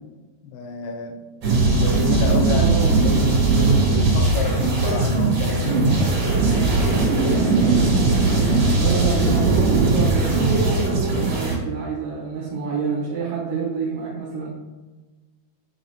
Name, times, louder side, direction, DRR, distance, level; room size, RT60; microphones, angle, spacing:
voice 1, 0.4-1.2 1.7-2.8 3.0-3.5 3.8-6.1, left 6 dB, 90° left, 4 dB, 2.8 m, -30 dB
sound 1, 1.4-11.6, right 3 dB, 50° right, 2.6 m, -19 dB
voice 2, 2.6-4.0 8.8-14.5, right 5 dB, 70° right, -5 dB, 2.5 m, -27 dB
8.0 x 3.0 x 4.1 m, 1.2 s
omnidirectional pair, 4.5 m